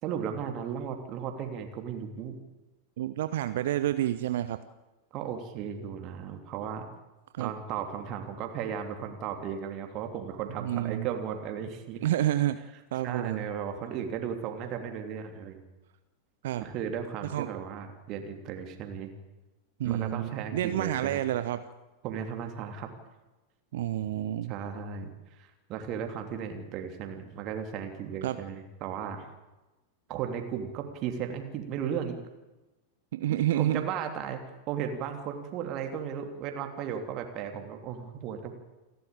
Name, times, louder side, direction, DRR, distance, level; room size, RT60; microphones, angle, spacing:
voice 1, 0.0-2.3 5.1-6.8 7.4-12.0 13.0-15.6 16.6-19.1 19.8-21.2 22.0-22.9 24.5-29.3 30.1-32.2 33.3-38.5, right 8 dB, 40° right, 5 dB, 3.1 m, -35 dB
voice 2, 3.0-4.6 7.3-7.5 10.6-11.1 12.0-12.6 12.9-13.4 16.4-16.6 17.3-17.5 19.8-21.6 23.7-24.5 28.2-28.4 33.1-33.9, right 13 dB, 55° right, 12 dB, 0.9 m, -29 dB
28.5 x 12.5 x 8.9 m, 1.1 s
figure-of-eight pair, 90°, 0 cm